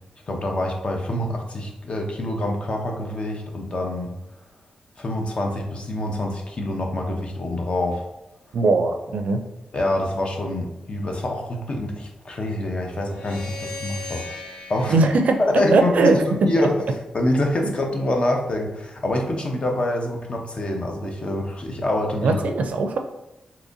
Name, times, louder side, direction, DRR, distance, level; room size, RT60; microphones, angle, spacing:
voice 1, 0.3-4.2 5.0-8.0 9.7-14.2 14.7-15.0 15.4-16.8 17.1-22.4, left 1 dB, 45° left, 2 dB, 0.7 m, -25 dB
voice 2, 8.5-9.4 14.9-15.4 15.7-16.2 22.2-23.0, right 3 dB, 70° right, 6 dB, 0.4 m, -19 dB
sound 1, 13.1-16.4, left 3 dB, 85° left, 0.6 m, -38 dB
3.9 x 2.9 x 2.6 m, 0.93 s
cardioid pair, 55°, 3 cm